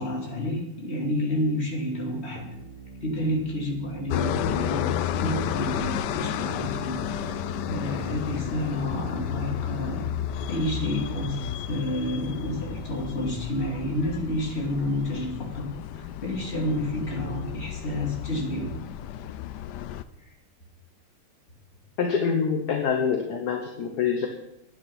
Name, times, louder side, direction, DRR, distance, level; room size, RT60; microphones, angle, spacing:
voice 1, 0.0-2.5 3.0-10.1 10.5-11.4 11.7-18.8, left 1 dB, 30° left, -1 dB, 2.8 m, -30 dB
sound 1, 2.4-14.4, right 4 dB, 80° right, 2.8 m, -43 dB
sound 2, 4.1-20.0, left 10 dB, 80° left, 0.9 m, -32 dB
voice 2, 22.0-24.3, left 6 dB, 55° left, 3 dB, 1.5 m, -25 dB
11.0 x 9.7 x 5.9 m, 0.87 s
omnidirectional pair, 2.4 m